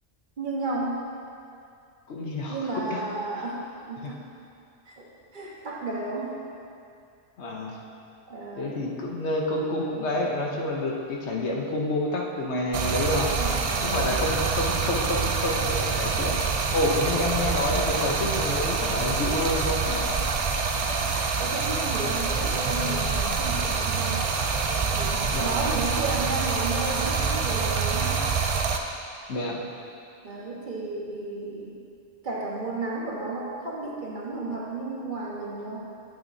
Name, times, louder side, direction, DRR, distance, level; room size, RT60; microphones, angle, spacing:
voice 1, 0.4-1.0 2.5-4.2 4.9-5.1 5.3-6.3 8.3-8.8 13.1-14.2 21.4-24.3 24.9-28.2 30.2-31.8 32.2-35.8, right 2 dB, 45° right, -4 dB, 1.2 m, -33 dB
voice 2, 2.1-3.0 4.0-4.1 7.4-7.8 8.6-13.3 13.8-16.4 16.7-20.3 25.3-25.6 29.3-29.6, left 1 dB, 70° left, -1 dB, 1.1 m, -28 dB
Stream, 12.7-28.8, right 5 dB, 70° right, 0.3 m, -26 dB
9.0 x 8.9 x 2.7 m, 2.5 s
omnidirectional pair, 1.2 m